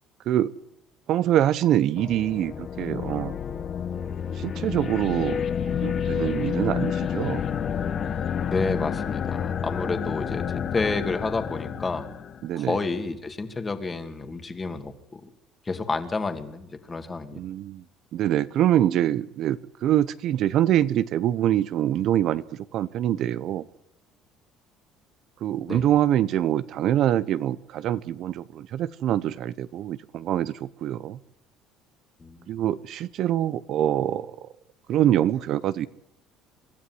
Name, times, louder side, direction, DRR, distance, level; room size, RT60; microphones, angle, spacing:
voice 1, 1.1-3.4 4.3-5.4 5.8-7.4 12.4-12.8 17.3-17.8 18.1-22.4 22.7-23.7 25.4-31.2 32.5-34.4 34.9-35.9, right 12 dB, 55° right, 16 dB, 0.7 m, -24 dB
sound 1, 2.0-12.5, left 8 dB, 40° left, 1.2 m, -29 dB
voice 2, 8.5-12.1 12.6-15.3 15.7-17.4 25.7-25.9 32.2-32.5, left 3 dB, 20° left, 8 dB, 2.2 m, -30 dB
25.5 x 12.5 x 9.6 m, 0.85 s
cardioid pair, 120°, 0 cm